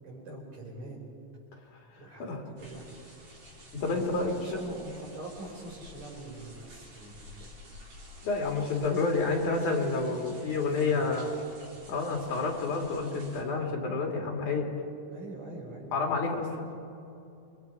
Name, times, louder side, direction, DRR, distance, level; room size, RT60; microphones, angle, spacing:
voice 1, 0.0-1.0 2.0-2.9 3.9-7.6 10.1-11.1 15.1-16.2, right 2 dB, 65° right, -2 dB, 5.9 m, -44 dB
sound 1, 2.6-13.4, equal, 85° right, 6.1 m, -51 dB
voice 2, 3.8-4.3 8.2-11.3 11.9-14.7 15.9-16.7, left 3 dB, 85° left, 1 dB, 3.9 m, -29 dB
28.0 x 22.5 x 4.8 m, 2.7 s
omnidirectional pair, 3.4 m